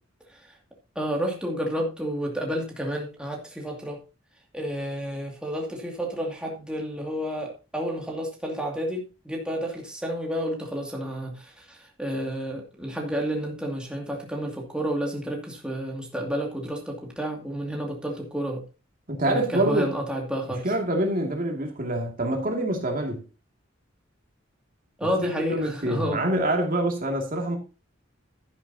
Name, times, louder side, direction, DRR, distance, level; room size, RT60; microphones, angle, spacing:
voice 1, 1.0-4.0 4.5-18.6 19.3-20.6 25.0-26.2, equal, 5° right, 2.4 m, -30 dB
voice 2, 19.1-19.9 20.5-23.2 25.0-27.6, right 1 dB, 45° right, 2.4 m, -26 dB
12.0 x 10.5 x 2.8 m
head